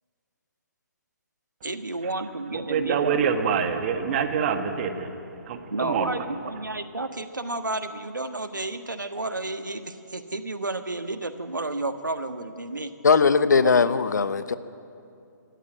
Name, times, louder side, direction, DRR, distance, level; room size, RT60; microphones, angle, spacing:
voice 1, 1.6-3.5 5.7-12.9 13.6-13.9, right 2 dB, 85° right, 8 dB, 1.5 m, -31 dB
voice 2, 2.7-5.2 5.4-6.1, right 7 dB, 35° right, 7 dB, 1.8 m, -25 dB
voice 3, 13.0-14.6, left 5 dB, 70° left, 13 dB, 1.0 m, -19 dB
25.5 x 13.0 x 9.0 m, 2.6 s
figure-of-eight pair, 135°, 10 cm